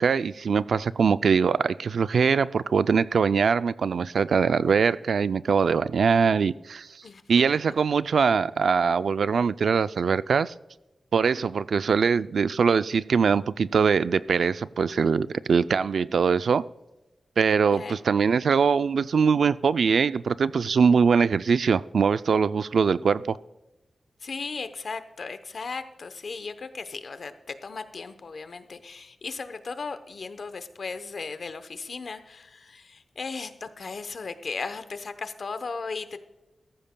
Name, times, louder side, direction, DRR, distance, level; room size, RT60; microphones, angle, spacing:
voice 1, 0.0-6.9 7.3-10.5 11.1-16.6 17.4-23.4, right 6 dB, 75° right, 0.3 m, -22 dB
voice 2, 24.2-27.3 27.6-36.2, left 4 dB, 55° left, 0.8 m, -36 dB
17.0 x 14.0 x 2.2 m
wide cardioid pair, 175°, 0 cm